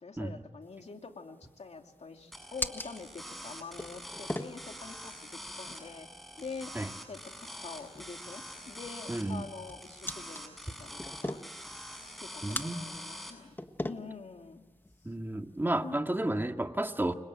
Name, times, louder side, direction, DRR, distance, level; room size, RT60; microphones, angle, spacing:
voice 1, 0.0-6.1 6.4-6.7 7.1-11.4 12.0-13.6 13.8-14.6 15.8-16.0, left 4 dB, 75° left, 4 dB, 2.7 m, -45 dB
sound 1, 0.6-16.0, left 1 dB, 20° left, 1.5 m, -44 dB
sound 2, 2.3-13.3, equal, ahead, 7.2 m, -45 dB
voice 2, 9.1-9.5 12.4-12.9 15.0-17.1, right 1 dB, 20° right, 5 dB, 2.1 m, -32 dB
30.0 x 25.5 x 7.8 m, 1.1 s
wide cardioid pair, 55°, 11 cm